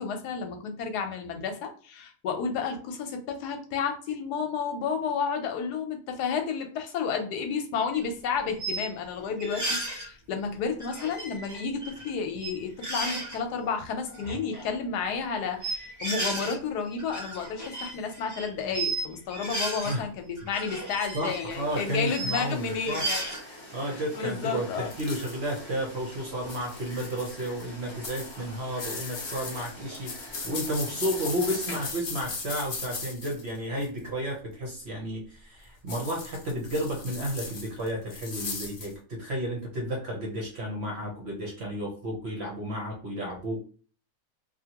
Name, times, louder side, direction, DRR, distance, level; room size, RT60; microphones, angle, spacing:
voice 1, 0.0-23.2 23.9-24.9, left 5 dB, 85° left, 5 dB, 1.2 m, -31 dB
sound 1, 7.9-8.0 8.6-8.9 9.4-10.1 10.8-12.1 12.3-12.5 12.8-13.4 14.1-14.6 15.6-16.6 16.9-19.0 19.3-20.0 20.4-22.4 22.8-23.4, right 2 dB, 15° right, 0.6 m, -34 dB
voice 2, 21.1-23.1 23.7-30.1 30.4-43.6, equal, 55° right, 0 dB, 0.8 m, -32 dB
sound 2, 21.5-31.9, left 1 dB, 25° left, 0.8 m, -45 dB
sound 3, 24.9-25.6 26.4-27.6 28.0-34.0 35.9-38.9, left 4 dB, 55° left, 0.6 m, -38 dB
2.8 x 2.4 x 2.8 m, 0.40 s
omnidirectional pair, 1.7 m